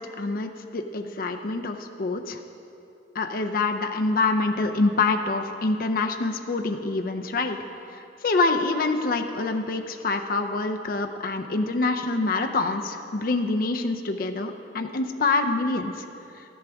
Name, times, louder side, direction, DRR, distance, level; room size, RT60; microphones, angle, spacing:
voice 1, 0.0-2.4 3.2-7.6 8.2-15.9, left 3 dB, 50° left, 5 dB, 0.5 m, -26 dB
13.0 x 10.5 x 3.5 m, 2.8 s
head